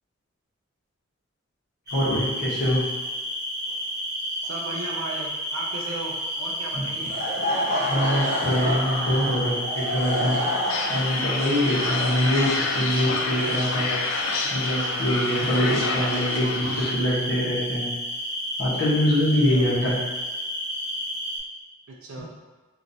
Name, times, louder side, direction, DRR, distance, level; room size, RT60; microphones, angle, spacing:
voice 1, 1.9-2.8 6.7-6.8 7.9-10.3 10.9-13.9 14.5-17.9 18.6-20.0, equal, 55° left, -8 dB, 1.1 m, -24 dB
sound 1, 1.9-21.4, equal, 20° right, 0.9 m, -31 dB
voice 2, 4.4-7.1 12.0-12.4 19.5-19.8 21.9-22.3, right 2 dB, 85° right, -2 dB, 0.5 m, -36 dB
Laughter / Crowd, 7.0-12.9, left 1 dB, 40° left, 0.7 m, -28 dB
sound 2, 10.7-16.9, left 3 dB, 80° left, 0.4 m, -29 dB
2.9 x 2.5 x 3.9 m, 1.3 s
head